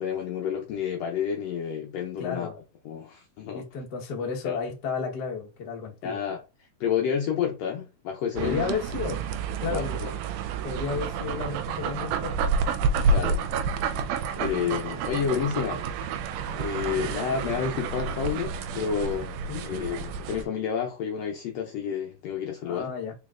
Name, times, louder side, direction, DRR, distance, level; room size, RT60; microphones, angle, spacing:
voice 1, 0.0-2.5 2.8-3.6 4.4-4.6 6.0-6.4 6.8-8.7 9.7-10.1 13.1-13.5 13.8-14.1 14.4-16.1 16.6-19.4 19.6-22.9, left 7 dB, 75° left, 1.6 m, -30 dB
voice 2, 2.2-2.6 3.4-6.2 8.4-9.3 9.6-10.1 10.6-12.6 19.5-19.9 22.6-23.1, left 5 dB, 55° left, 1.1 m, -32 dB
sound 1, 8.4-20.4, right 5 dB, 85° right, 2.1 m, -29 dB
5.3 x 4.1 x 2.4 m
omnidirectional pair, 3.6 m